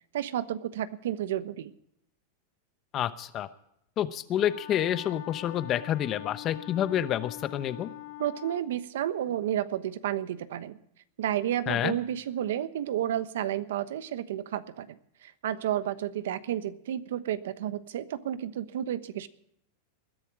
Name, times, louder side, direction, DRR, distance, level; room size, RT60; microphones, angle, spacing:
voice 1, 0.1-1.7 8.2-10.8 11.2-15.0 15.2-19.3, right 11 dB, 80° right, 13 dB, 1.1 m, -31 dB
voice 2, 2.9-3.5 4.0-7.9 11.7-11.9, left 10 dB, 30° left, 13 dB, 0.9 m, -28 dB
Wind instrument woodwind instrument, 4.3-8.7, left 16 dB, 70° left, 2.6 m, -44 dB
20.5 x 11.0 x 4.9 m, 0.75 s
supercardioid pair, 155°, 0 cm